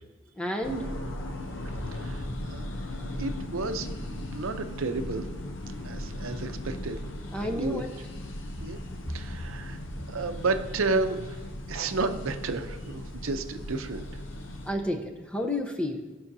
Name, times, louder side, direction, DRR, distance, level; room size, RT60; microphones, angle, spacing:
voice 1, 0.4-0.9 7.3-7.9 14.7-16.0, left 1 dB, 5° left, 3 dB, 0.7 m, -31 dB
sound 1, 0.6-14.7, left 1 dB, 65° left, 0.7 m, -37 dB
voice 2, 1.9-2.7 3.1-3.9 4.3-5.3 5.8-7.0 7.4-7.8 8.6-8.8 9.1-9.8 10.1-14.2, right 3 dB, 85° right, 8 dB, 0.6 m, -32 dB
16.5 x 5.6 x 2.7 m, 1.2 s
head